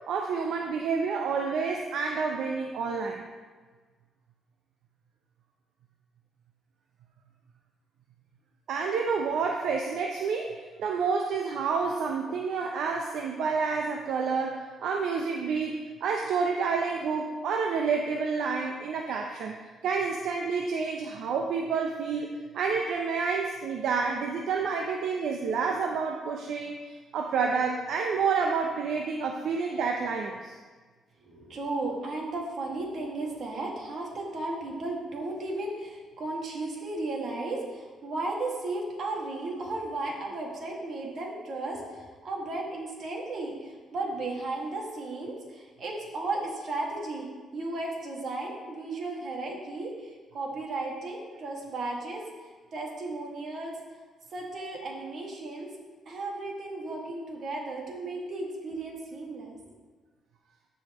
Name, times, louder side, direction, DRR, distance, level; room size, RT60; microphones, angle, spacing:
voice 1, 0.1-3.2 8.7-19.6 19.8-22.3 22.5-30.6 56.9-57.0, right 5 dB, 75° right, 2 dB, 0.6 m, -29 dB
voice 2, 31.2-47.3 47.5-52.2 52.7-53.8 54.3-55.7 56.1-59.6, right 2 dB, 60° right, -1 dB, 2.0 m, -35 dB
14.0 x 4.9 x 3.0 m, 1.4 s
cardioid pair, 90°, 0 cm